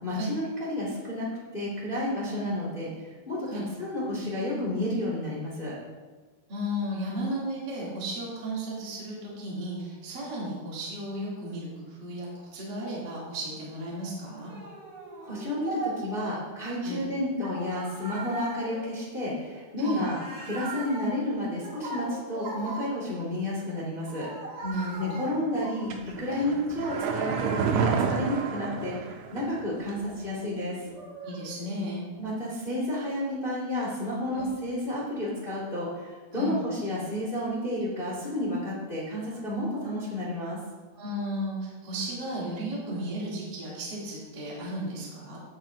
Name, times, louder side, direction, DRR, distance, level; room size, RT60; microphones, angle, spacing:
voice 1, 0.0-5.7 15.2-20.2 20.4-24.3 25.0-30.8 32.2-40.6, left 1 dB, 75° left, -6 dB, 0.5 m, -31 dB
voice 2, 6.5-14.5 16.8-17.0 19.8-20.1 24.6-25.4 26.3-26.5 31.2-32.1 34.3-34.4 36.3-36.6 40.9-45.4, equal, 30° right, -7 dB, 2.8 m, -34 dB
sound 1, 14.5-16.3 17.4-23.3 24.1-26.4 26.8-31.9, right 2 dB, 70° right, 1.3 m, -40 dB
sound 2, 25.9-29.6 29.9-30.0, right 6 dB, 90° right, 3.4 m, -29 dB
16.5 x 7.7 x 2.8 m, 1.3 s
omnidirectional pair, 5.4 m